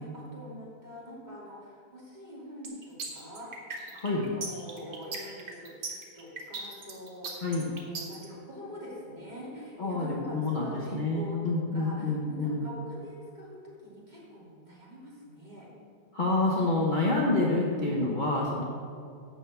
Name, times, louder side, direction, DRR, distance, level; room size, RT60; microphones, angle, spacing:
voice 1, 0.0-5.7 6.1-15.7, equal, 25° right, -7 dB, 3.0 m, -44 dB
sound 1, 2.6-8.3, right 3 dB, 90° right, 2.1 m, -38 dB
voice 2, 9.8-10.6 10.9-12.6 16.1-18.6, left 2 dB, 30° left, -4 dB, 1.1 m, -27 dB
12.0 x 4.8 x 8.2 m, 2.3 s
omnidirectional pair, 1.8 m